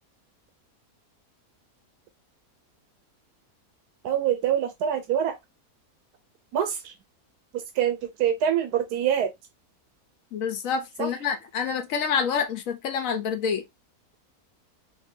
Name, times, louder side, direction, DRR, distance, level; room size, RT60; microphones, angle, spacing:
voice 1, 4.0-5.4 6.5-6.9 7.8-9.3 11.0-11.1, right 9 dB, 90° right, 1.2 m, -25 dB
voice 2, 10.3-13.6, left 6 dB, 65° left, 1.2 m, -27 dB
4.4 x 2.8 x 2.7 m
omnidirectional pair, 1.6 m